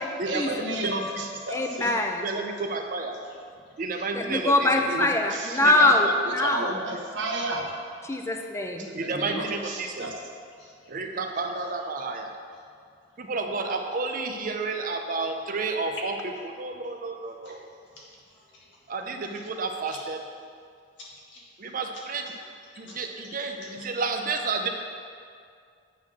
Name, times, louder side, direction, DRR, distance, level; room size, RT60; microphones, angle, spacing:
voice 1, 0.2-1.6 4.9-5.9 6.3-7.7 8.9-10.1, right 2 dB, 80° right, 0 dB, 1.0 m, -33 dB
voice 2, 1.5-2.3 4.1-6.8 8.0-8.9 9.3-9.4, left 2 dB, 15° left, 3 dB, 0.5 m, -23 dB
voice 3, 2.2-3.1 3.8-4.9 5.6-5.9 6.4-6.5 9.0-10.1 10.9-12.3 13.2-16.1 16.6-17.6 18.9-20.2 21.6-22.2 22.8-24.7, right 4 dB, 50° right, 4 dB, 0.6 m, -31 dB
voice 4, 10.6-11.3 11.6-11.9 17.4-17.5 18.0-18.7 19.3-19.4 21.3-21.4 22.3-23.1 23.4-23.9, left 2 dB, 85° left, -5 dB, 1.9 m, -51 dB
8.1 x 3.8 x 6.1 m, 2.2 s
head